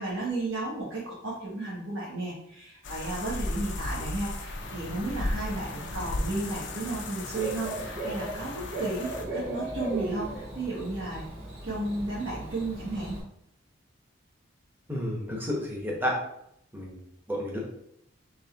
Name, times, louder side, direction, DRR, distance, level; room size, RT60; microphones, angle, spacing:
voice 1, 0.0-11.2 11.6-13.2, right 2 dB, 70° right, -8 dB, 1.3 m, -33 dB
sound 1, 2.8-9.2, left 2 dB, 60° left, 0.5 m, -36 dB
Bird / Cricket, 4.6-13.2, right 1 dB, 50° right, 1.4 m, -38 dB
voice 2, 14.9-16.2 16.7-17.6, equal, 10° right, -2 dB, 0.9 m, -31 dB
4.3 x 3.2 x 3.4 m, 0.75 s
head